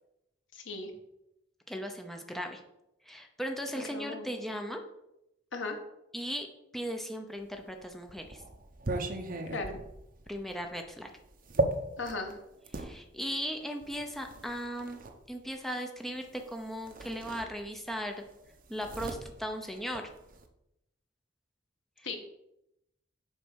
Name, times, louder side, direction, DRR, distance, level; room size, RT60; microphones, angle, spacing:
voice 1, 0.5-0.9 3.7-4.3 5.5-5.8 9.5-9.8 12.0-12.4 22.0-22.2, left 3 dB, 75° left, 4 dB, 1.4 m, -37 dB
voice 2, 1.7-2.6 3.0-4.8 6.1-6.5 6.7-8.4 10.3-11.1 12.7-15.0 15.3-18.2 18.7-20.1 22.0-22.1, equal, ahead, 3 dB, 0.7 m, -37 dB
sound 1, 7.6-12.9 13.8-15.2 16.4-16.5 16.8-18.0 18.2-20.5, right 2 dB, 45° right, 0.9 m, -36 dB
7.2 x 4.8 x 6.3 m, 0.85 s
head